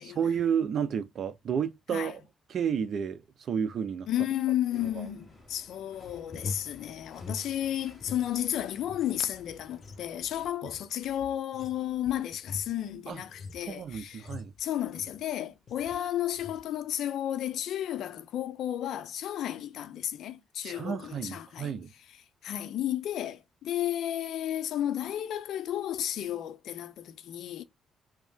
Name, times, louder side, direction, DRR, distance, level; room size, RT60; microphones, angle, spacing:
voice 1, 0.0-2.2 2.5-4.1 5.0-5.1 13.1-13.2 13.7-14.5 20.6-21.9, right 7 dB, 60° right, 0.6 m, -31 dB
voice 2, 4.1-14.3 14.6-21.7 22.4-27.6, left 11 dB, 75° left, 0.5 m, -33 dB
sound 1, 4.7-10.5, left 2 dB, 15° left, 1.6 m, -55 dB
sound 2, 5.9-8.3 8.6-15.3 15.7-16.0 16.3-16.7, left 4 dB, 50° left, 0.8 m, -44 dB
3.1 x 2.8 x 3.5 m
cardioid pair, 90°, 0 cm